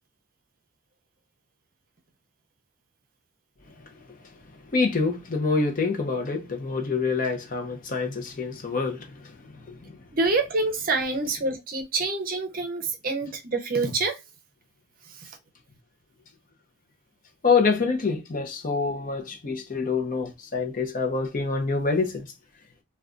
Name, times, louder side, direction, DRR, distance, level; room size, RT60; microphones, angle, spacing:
voice 1, 4.7-9.0 9.9-10.0 17.4-22.1, left 4 dB, 40° left, 0.6 m, -26 dB
voice 2, 10.1-14.1, right 3 dB, 40° right, 0.6 m, -26 dB
2.3 x 2.2 x 3.7 m
head